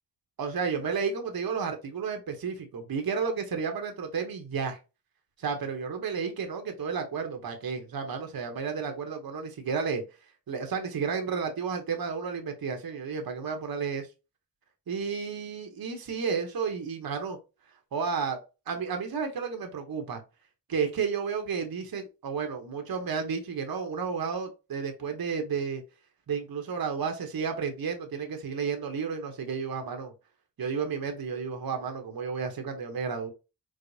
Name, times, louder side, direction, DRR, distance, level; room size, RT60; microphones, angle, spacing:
voice 1, 0.4-4.8 5.4-10.0 10.5-14.1 14.9-17.4 17.9-20.2 20.7-25.8 26.3-30.1 30.6-33.3, right 5 dB, 55° right, 0.9 m, -32 dB
4.7 x 2.0 x 2.6 m
cardioid pair, 50°, 43 cm